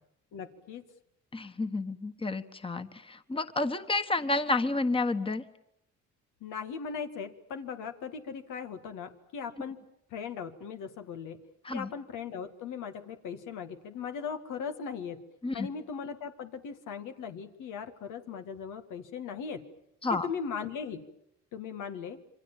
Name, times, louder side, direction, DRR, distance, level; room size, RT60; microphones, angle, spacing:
voice 1, 0.3-0.8 6.4-9.8 10.1-11.4 11.7-15.2 15.5-19.6 20.1-21.0 21.5-22.2, left 6 dB, 90° left, 6 dB, 2.1 m, -38 dB
voice 2, 1.3-5.4 11.6-11.9 15.4-15.7 20.0-20.3, left 2 dB, 20° left, 9 dB, 1.4 m, -30 dB
27.5 x 24.0 x 7.4 m, 0.77 s
cardioid pair, 90°, 30 cm